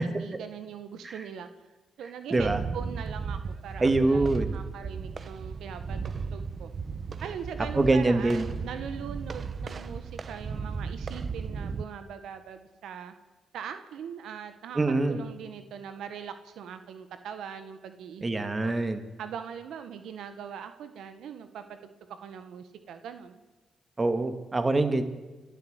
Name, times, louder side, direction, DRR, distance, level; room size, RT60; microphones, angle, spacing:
voice 1, 0.0-1.5 2.0-6.7 7.2-13.1 13.5-18.2 18.6-18.7 19.2-21.9 22.2-23.4, right 7 dB, 80° right, 9 dB, 1.4 m, -41 dB
sound 1, 2.4-11.8, right 5 dB, 50° right, 1.0 m, -35 dB
voice 2, 3.8-4.5 7.7-8.4 14.7-15.2 18.2-19.0 24.0-25.0, right 2 dB, 25° right, 9 dB, 2.3 m, -24 dB
29.5 x 11.5 x 8.2 m, 1.2 s
cardioid pair, 70°, 0 cm